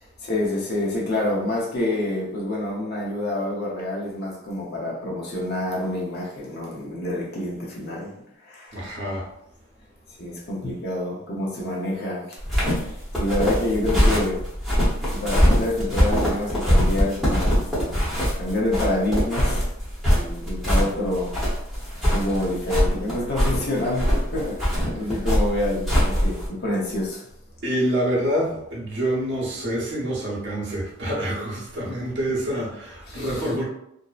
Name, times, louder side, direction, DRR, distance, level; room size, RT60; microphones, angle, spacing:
voice 1, 0.2-8.1 8.4-9.0 10.2-12.4 12.7-14.4 15.1-18.0 18.4-19.7 20.1-21.4 22.1-27.3 33.1-33.5, left 1 dB, 50° left, -3 dB, 0.6 m, -27 dB
voice 2, 8.7-9.3 27.6-33.6, equal, 55° right, -4 dB, 0.8 m, -26 dB
sound 1, 12.4-26.5, equal, ahead, 0.8 m, -22 dB
2.6 x 2.0 x 2.3 m, 0.78 s
head